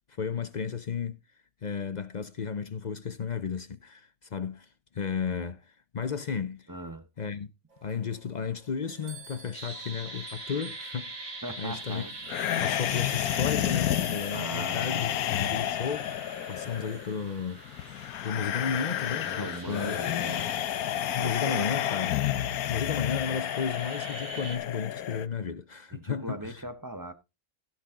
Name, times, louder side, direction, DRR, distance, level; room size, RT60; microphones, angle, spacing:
voice 1, 0.1-1.2 1.6-6.7 7.2-7.5 7.8-12.0 12.6-15.1 15.4-16.1 16.5-17.6 18.2-20.0 21.1-22.2 22.7-26.6, left 6 dB, 50° left, 0.5 m, -33 dB
voice 2, 6.7-7.1 11.4-12.1 14.3-15.1 19.2-20.5 21.2-21.7 25.9-27.1, right 1 dB, 15° right, 0.7 m, -39 dB
sound 1, 7.7-22.9, right 2 dB, 50° right, 3.4 m, -57 dB
sound 2, 9.5-24.6, right 3 dB, 85° right, 3.3 m, -45 dB
sound 3, 12.3-25.3, left 11 dB, 75° left, 1.2 m, -30 dB
16.0 x 6.1 x 3.7 m
omnidirectional pair, 1.6 m